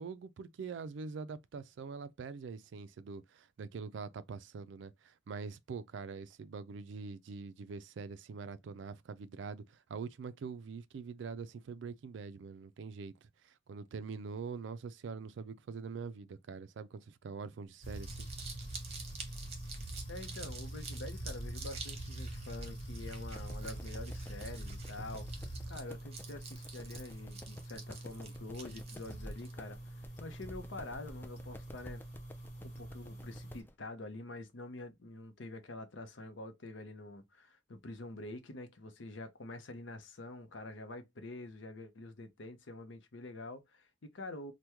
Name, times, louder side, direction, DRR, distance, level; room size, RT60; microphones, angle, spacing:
voice 1, 0.0-18.3, right 5 dB, 65° right, 0.3 m, -44 dB
Crumpling crinkling, 17.7-29.5, right 5 dB, 30° right, 0.8 m, -49 dB
sound 1, 17.8-33.6, right 1 dB, 55° left, 1.5 m, -45 dB
voice 2, 20.1-25.3 25.7-32.0 32.6-44.5, left 2 dB, 75° left, 0.7 m, -46 dB
sound 2, 23.3-33.7, left 1 dB, 10° left, 0.3 m, -53 dB
2.9 x 2.2 x 3.4 m
head